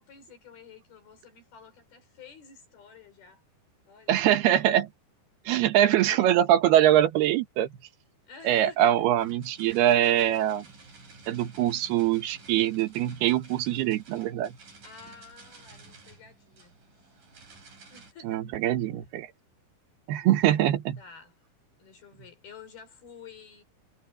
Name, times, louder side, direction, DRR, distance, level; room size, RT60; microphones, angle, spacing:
voice 1, 0.0-3.4 3.9-4.2 5.7-6.4 8.3-9.1 14.8-16.7 17.9-18.4 21.0-21.3 21.8-23.6, left 6 dB, 70° left, 6.6 m, -50 dB
voice 2, 4.1-4.9 5.5-7.7 8.4-10.7 11.3-14.6 18.2-19.3 20.1-21.0, right 12 dB, 85° right, 3.3 m, -23 dB
sound 1, 9.2-18.1, right 3 dB, 55° right, 8.1 m, -52 dB
omnidirectional pair, 4.5 m